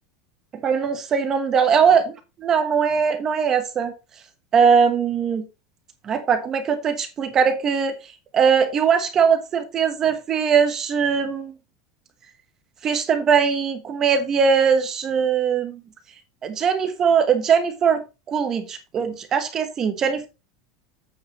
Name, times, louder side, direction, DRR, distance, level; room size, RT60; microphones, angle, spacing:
voice 1, 0.6-2.0 2.4-3.9 4.5-5.4 6.0-7.9 8.3-11.5 12.8-15.8 16.4-18.0 18.3-20.3, right 6 dB, 20° right, 8 dB, 1.2 m, -20 dB
8.7 x 8.5 x 3.1 m, 0.27 s
supercardioid pair, 175°, 2 cm